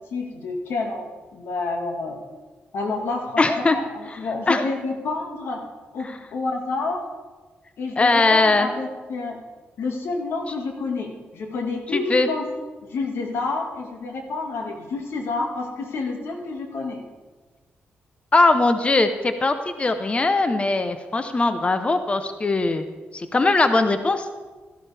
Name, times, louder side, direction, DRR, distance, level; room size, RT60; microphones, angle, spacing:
voice 1, 0.0-2.2 2.7-3.4 3.7-5.6 5.9-7.1 7.8-9.4 9.8-12.5 12.9-17.0, left 3 dB, 75° left, 2 dB, 1.9 m, -29 dB
voice 2, 3.4-3.8 4.5-4.6 8.0-8.7 11.9-12.3 18.3-22.8 23.1-24.3, left 3 dB, 30° left, 9 dB, 0.8 m, -20 dB
13.5 x 11.5 x 3.5 m, 1.3 s
cardioid pair, 75°, 4 cm